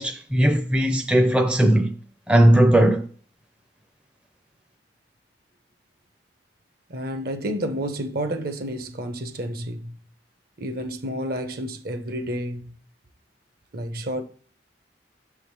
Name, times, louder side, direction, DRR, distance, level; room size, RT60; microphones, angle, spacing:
voice 1, 0.0-1.9 2.3-3.0, right 1 dB, 5° right, 0.5 m, -18 dB
voice 2, 6.9-10.0 10.6-12.8 13.7-14.2, right 1 dB, 55° right, 0.9 m, -30 dB
6.4 x 3.6 x 4.7 m
head